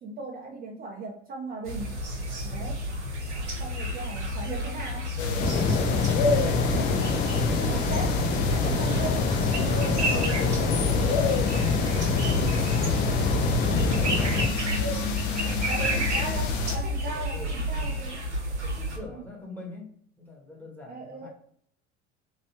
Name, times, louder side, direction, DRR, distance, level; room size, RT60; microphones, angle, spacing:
voice 1, 0.0-2.0 2.4-2.8 3.6-5.1 5.6-5.9 6.2-7.3 7.6-8.2 8.5-11.0 14.8-18.2 19.0-19.2 20.9-21.3, right 2 dB, 25° right, -1 dB, 0.6 m, -38 dB
sound 1, 1.6-19.0, equal, 85° right, 0.7 m, -31 dB
voice 2, 2.4-2.8 12.0-12.3 13.3-13.4 15.3-15.7 16.0-16.4 17.1-18.0 18.5-21.3, left 2 dB, 5° left, -2 dB, 1.2 m, -45 dB
sound 2, 5.2-16.8, left 4 dB, 60° left, 0.7 m, -30 dB
sound 3, 5.4-14.5, left 4 dB, 25° left, 0.5 m, -26 dB
3.1 x 2.7 x 2.8 m, 0.63 s
figure-of-eight pair, 65°, 34 cm